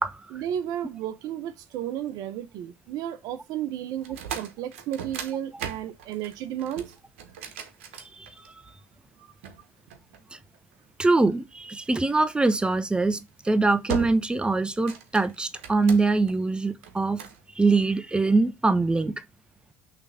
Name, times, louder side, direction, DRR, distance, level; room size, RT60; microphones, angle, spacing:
voice 1, 0.3-6.9 9.2-9.3, right 10 dB, 70° right, 0.7 m, -33 dB
sound 1, 4.0-8.7 9.4-10.7 12.5-12.8 13.3-13.5 13.9-14.4 14.7-16.3 16.8-17.4, right 7 dB, 90° right, 1.0 m, -38 dB
voice 2, 11.0-13.2 13.4-17.2 17.6-19.1, right 3 dB, 15° right, 0.8 m, -23 dB
5.9 x 3.3 x 5.5 m
hypercardioid pair, 75°, 7 cm